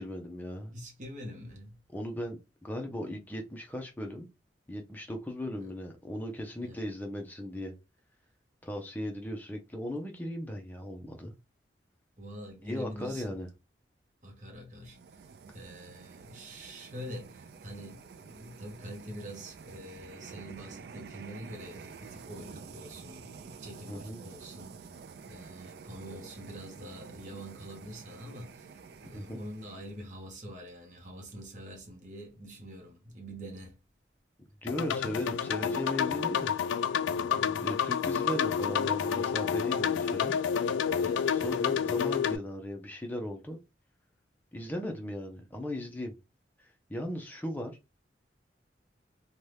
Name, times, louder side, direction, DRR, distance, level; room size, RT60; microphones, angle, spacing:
voice 1, 0.0-0.7 1.9-4.3 4.7-7.7 8.6-11.3 12.7-13.5 23.9-24.2 29.1-29.4 34.6-36.6 37.6-40.4 41.3-43.6 44.5-46.1 46.6-47.8, left 1 dB, 10° left, 0.5 m, -37 dB
voice 2, 0.7-1.8 5.6-5.7 6.5-6.9 12.2-13.4 14.2-15.2 15.5-33.8 37.1-37.7 41.0-41.3, equal, 40° right, 0.8 m, -45 dB
sound 1, 14.8-30.2, right 5 dB, 60° right, 0.3 m, -49 dB
sound 2, 34.7-42.4, left 7 dB, 90° left, 0.3 m, -29 dB
2.7 x 2.3 x 3.2 m
head